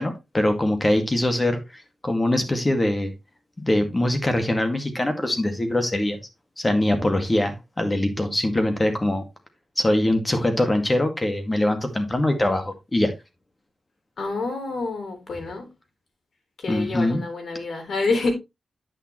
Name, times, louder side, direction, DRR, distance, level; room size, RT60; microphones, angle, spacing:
voice 1, 0.0-1.6 2.0-3.1 3.6-6.2 6.6-9.2 9.8-13.1 16.7-17.2, left 1 dB, 20° left, 2.0 m, -23 dB
voice 2, 14.2-15.7 16.6-18.3, left 3 dB, 65° left, 3.7 m, -27 dB
9.8 x 6.5 x 3.1 m
wide cardioid pair, 95°, 0 cm